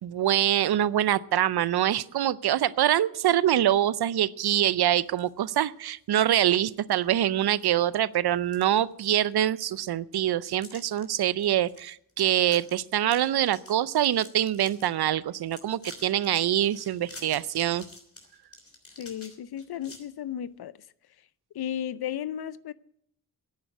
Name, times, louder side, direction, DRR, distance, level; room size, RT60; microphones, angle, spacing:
voice 1, 0.0-17.8, right 11 dB, 80° right, 0.6 m, -25 dB
sound 1, 5.1-5.6 6.1-6.2 6.9-7.0 7.4-7.9 8.3-9.3 9.6-9.7 10.6-11.0 11.4-11.8 12.1-12.2 12.4-12.7 13.0-14.9 15.3-20.0, left 2 dB, 35° left, 3.4 m, -48 dB
voice 2, 19.0-20.7 21.5-22.7, left 10 dB, 80° left, 0.7 m, -34 dB
10.5 x 9.6 x 9.3 m
cardioid pair, 75°, 38 cm